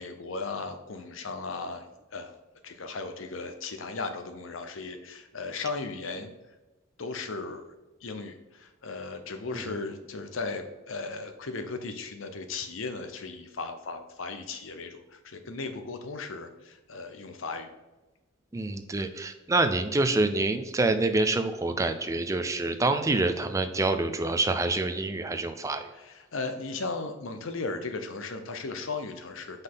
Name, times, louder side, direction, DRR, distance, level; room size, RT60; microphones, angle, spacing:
voice 1, 0.0-1.9 2.1-2.3 2.6-6.3 7.0-7.6 8.0-17.7 25.9-29.6, left 3 dB, 70° left, 7 dB, 0.8 m, -36 dB
voice 2, 18.5-25.9, right 2 dB, 15° right, 8 dB, 0.4 m, -26 dB
5.3 x 4.1 x 5.5 m, 1.1 s
head